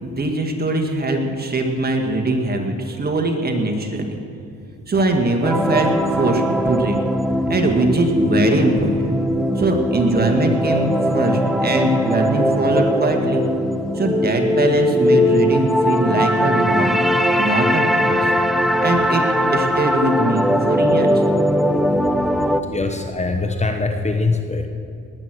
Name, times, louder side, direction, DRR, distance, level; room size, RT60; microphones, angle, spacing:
voice 1, 0.0-4.2 4.9-7.0 7.5-9.2 9.6-13.5 13.9-17.0 17.4-18.3 18.8-19.2 19.5-21.2, right 2 dB, 30° right, 2 dB, 2.1 m, -21 dB
sound 1, 5.4-22.6, equal, ahead, 0.7 m, -19 dB
voice 2, 22.7-24.7, left 3 dB, 20° left, 5 dB, 1.1 m, -22 dB
20.0 x 8.5 x 6.3 m, 2.5 s
cardioid pair, 90°, 30 cm